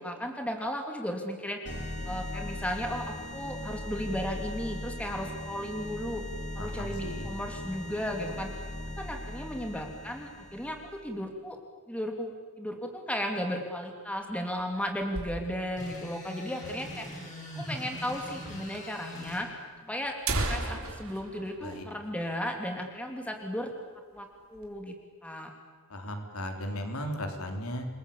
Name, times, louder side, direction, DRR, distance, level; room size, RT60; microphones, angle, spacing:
voice 1, 0.0-1.6 2.1-6.2 6.5-8.5 9.0-11.6 11.9-12.3 12.6-17.1 17.6-19.5 19.8-20.1 20.5-23.7 24.1-24.9 25.2-25.5, equal, 5° left, 3 dB, 2.8 m, -35 dB
sound 1, 1.7-11.1, left 1 dB, 50° left, 5.1 m, -39 dB
voice 2, 6.6-7.3 21.6-21.8 25.9-27.9, equal, 75° left, 4 dB, 3.6 m, -36 dB
sound 2, 14.1-15.9 16.2-16.3 16.5-16.6 17.3-17.4 18.3-18.4 18.7-18.8 19.6-19.7 20.0-22.6 22.9-23.1 23.5-23.7 24.2-24.7, right 2 dB, 70° right, 3.7 m, -36 dB
sound 3, 15.8-19.4, equal, 35° left, 7.9 m, -41 dB
28.5 x 21.0 x 8.5 m, 1.5 s
head